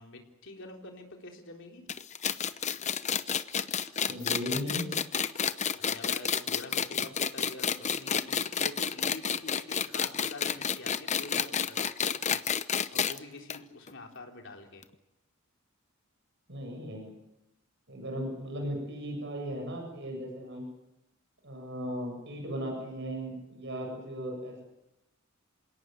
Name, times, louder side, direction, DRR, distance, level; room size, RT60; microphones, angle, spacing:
voice 1, 0.0-1.9 5.7-14.8, left 2 dB, 60° left, 2 dB, 3.9 m, -46 dB
sound 1, 1.9-13.2 13.5-13.6 13.9-14.0 14.8-14.9, left 7 dB, 35° left, 0.8 m, -30 dB
voice 2, 4.1-4.9 16.5-17.1 17.9-20.7 21.4-24.6, equal, 60° right, 2 dB, 7.7 m, -37 dB
27.5 x 18.0 x 9.2 m, 0.93 s
head